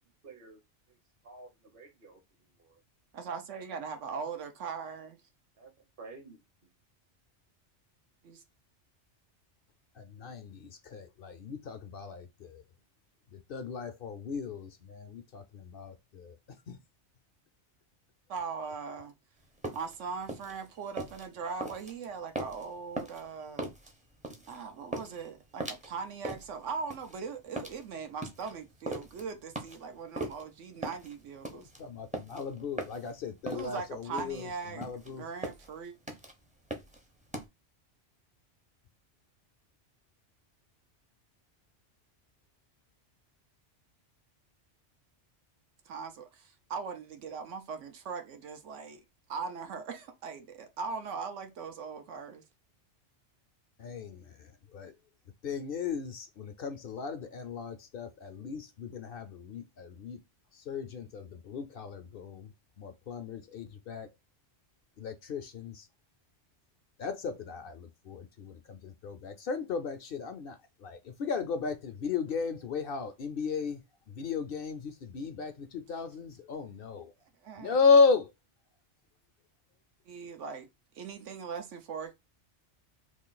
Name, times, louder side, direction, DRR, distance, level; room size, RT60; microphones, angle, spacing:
voice 1, 0.2-0.6 1.2-2.2 2.6-2.8 5.6-6.4, right 3 dB, 55° right, 0.9 m, -51 dB
voice 2, 3.1-5.2 8.2-8.4 18.3-19.1 19.7-23.7 24.4-31.7 33.5-35.9 45.9-49.0 49.3-52.4 77.4-77.8 80.1-80.7 80.9-82.1, right 5 dB, 90° right, 1.1 m, -40 dB
voice 3, 9.9-12.6 13.3-16.8 31.5-35.3 53.8-54.9 55.4-60.2 60.5-64.1 65.0-65.9 67.0-73.8 74.1-77.1 77.6-78.3, left 5 dB, 60° left, 0.7 m, -34 dB
sound 1, 19.4-37.4, right 1 dB, 10° right, 0.4 m, -40 dB
3.0 x 2.5 x 3.8 m
omnidirectional pair, 1.2 m